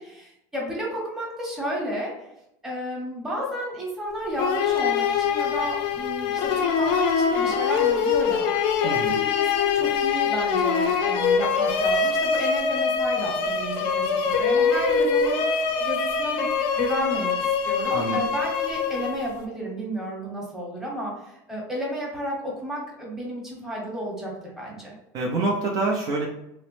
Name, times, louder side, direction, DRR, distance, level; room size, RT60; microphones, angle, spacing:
voice 1, 0.0-2.1 2.6-14.0 14.4-16.5 16.7-24.9, equal, 5° right, -4 dB, 1.0 m, -32 dB
sound 1, 4.4-19.4, left 6 dB, 55° left, 0.4 m, -24 dB
voice 2, 8.8-9.2 17.9-18.2 25.1-26.2, right 2 dB, 40° right, -2 dB, 0.5 m, -26 dB
2.9 x 2.0 x 3.1 m, 0.84 s
supercardioid pair, 135°, 10 cm